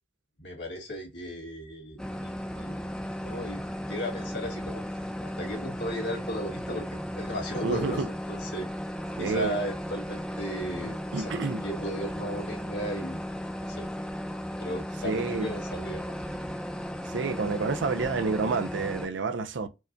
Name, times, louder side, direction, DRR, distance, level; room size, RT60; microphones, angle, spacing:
voice 1, 0.4-2.8 3.2-8.7 9.2-11.3 11.6-13.3 13.6-13.9 14.6-16.1, equal, 70° left, 1.9 m, -36 dB
sound 1, 2.0-19.1, equal, 5° left, 0.5 m, -35 dB
voice 2, 7.6-8.1 9.2-9.5 11.1-11.6 15.0-15.5 17.0-19.7, right 4 dB, 90° right, 0.5 m, -29 dB
4.6 x 2.2 x 2.6 m
head